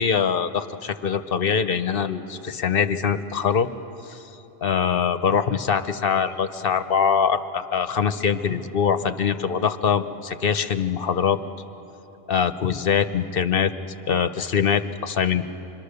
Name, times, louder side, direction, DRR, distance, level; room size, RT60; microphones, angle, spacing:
voice 1, 0.0-3.7 4.1-4.2 4.6-11.4 12.3-13.7 14.1-15.5, left 7 dB, 60° left, 10 dB, 1.0 m, -23 dB
26.5 x 23.5 x 6.7 m, 3.0 s
omnidirectional pair, 1.1 m